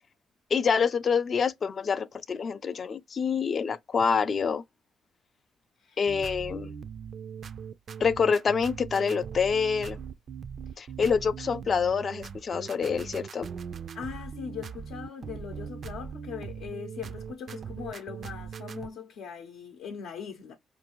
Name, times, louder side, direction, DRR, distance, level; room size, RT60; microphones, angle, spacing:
voice 1, 0.5-4.6 6.0-6.7 8.0-10.0 10.8-13.5, left 6 dB, 45° left, 0.4 m, -26 dB
sound 1, 6.1-18.9, right 7 dB, 50° right, 0.3 m, -40 dB
voice 2, 13.9-20.5, left 7 dB, 85° left, 0.6 m, -40 dB
4.4 x 2.6 x 2.9 m
cardioid pair, 90°, 0 cm